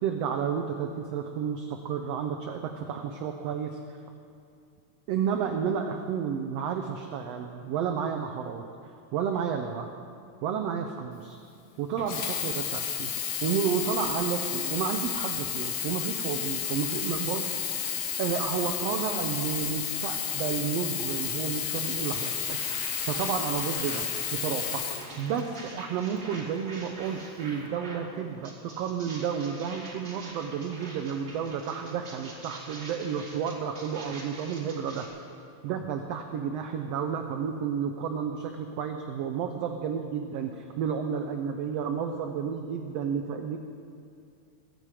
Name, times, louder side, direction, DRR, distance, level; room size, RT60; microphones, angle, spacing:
voice 1, 0.0-3.7 5.1-9.9 10.4-11.4 11.8-13.1 13.4-17.5 18.2-22.6 23.1-35.0 35.6-43.6, right 7 dB, 75° right, 5 dB, 1.6 m, -31 dB
Sink (filling or washing), 12.0-25.7 26.5-26.6, left 8 dB, 85° left, 2.6 m, -32 dB
sound 1, 21.7-28.1 28.4-35.1, right 2 dB, 35° right, 2.6 m, -45 dB
23.0 x 9.3 x 4.9 m, 2.4 s
omnidirectional pair, 3.4 m